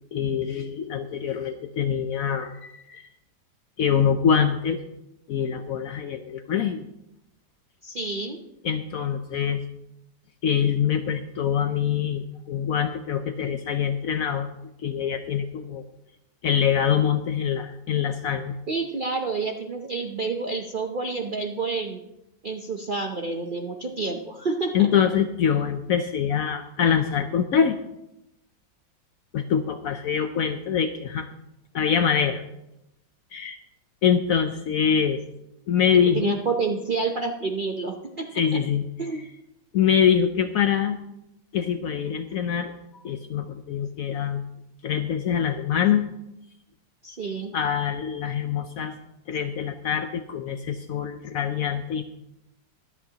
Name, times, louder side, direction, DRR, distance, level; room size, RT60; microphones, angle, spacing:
voice 1, 0.1-3.0 3.8-4.8 5.3-6.9 8.6-9.6 10.4-14.5 14.8-15.8 16.4-18.6 24.7-27.8 29.3-31.3 31.7-32.4 33.3-33.6 34.0-35.2 35.7-36.4 38.3-38.9 39.7-41.0 41.5-44.4 44.8-46.0 47.5-48.9 49.3-52.0, left 8 dB, 65° left, 8 dB, 0.9 m, -24 dB
voice 2, 7.8-8.4 18.7-22.0 22.4-24.9 36.1-38.3 39.0-39.2 47.0-47.5, right 4 dB, 55° right, 2 dB, 0.5 m, -29 dB
23.0 x 8.2 x 2.9 m, 0.87 s
omnidirectional pair, 2.0 m